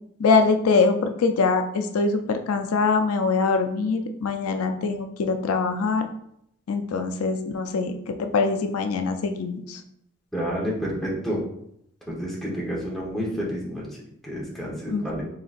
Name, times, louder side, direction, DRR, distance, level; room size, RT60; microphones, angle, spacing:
voice 1, 0.2-6.1 6.7-9.8 14.9-15.1, left 4 dB, 80° left, 6 dB, 0.4 m, -23 dB
voice 2, 10.3-11.4 12.1-13.8 14.2-15.2, equal, ahead, -5 dB, 1.0 m, -29 dB
4.0 x 3.8 x 2.5 m, 0.74 s
head